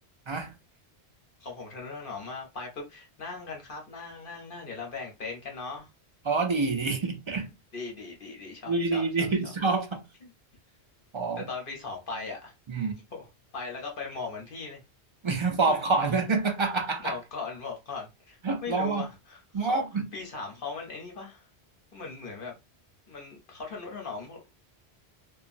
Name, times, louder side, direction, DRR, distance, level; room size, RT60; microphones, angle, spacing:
voice 1, 1.4-5.9 7.7-9.5 10.2-10.3 11.5-12.5 13.1-14.8 15.7-15.8 17.0-19.8 20.1-21.4 21.9-22.5 23.1-24.4, left 4 dB, 55° left, 1.0 m, -39 dB
voice 2, 6.3-7.5 8.7-10.0 11.1-11.4 12.7-12.9 15.2-17.2 18.4-19.1 19.5-20.1, right 4 dB, 55° right, 0.3 m, -27 dB
2.9 x 2.4 x 2.5 m
omnidirectional pair, 1.1 m